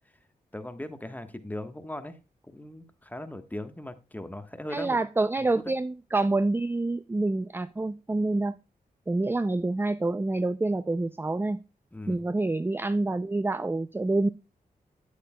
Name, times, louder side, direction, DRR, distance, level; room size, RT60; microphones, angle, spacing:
voice 1, 0.5-2.2 2.4-5.0 5.4-5.7 11.9-12.2, left 1 dB, 10° left, 9 dB, 1.2 m, -39 dB
voice 2, 4.7-8.5 9.1-11.6 12.1-14.3, right 2 dB, 15° right, 14 dB, 0.4 m, -27 dB
9.4 x 8.3 x 2.2 m, 0.31 s
cardioid pair, 50°, 16 cm